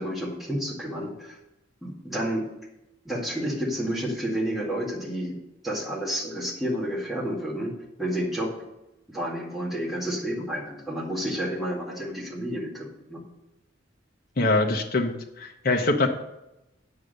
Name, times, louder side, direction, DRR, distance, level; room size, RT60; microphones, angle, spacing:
voice 1, 0.0-1.4 1.8-2.5 3.0-7.7 8.0-8.5 9.1-13.2, equal, ahead, -5 dB, 2.2 m, -30 dB
voice 2, 14.4-16.1, left 2 dB, 50° left, 2 dB, 0.9 m, -24 dB
8.5 x 6.3 x 6.7 m, 0.92 s
head